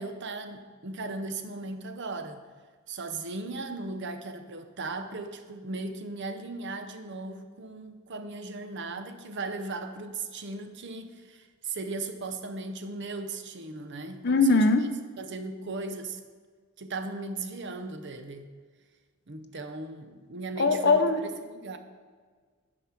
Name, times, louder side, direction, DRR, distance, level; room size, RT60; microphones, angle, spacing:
voice 1, 0.0-2.5 2.9-14.9 15.2-16.2 16.8-18.5 19.3-21.8, right 3 dB, 50° right, 8 dB, 0.7 m, -37 dB
voice 2, 14.2-14.8 20.6-21.2, left 3 dB, 50° left, 7 dB, 0.7 m, -21 dB
10.5 x 5.1 x 5.9 m, 1.6 s
head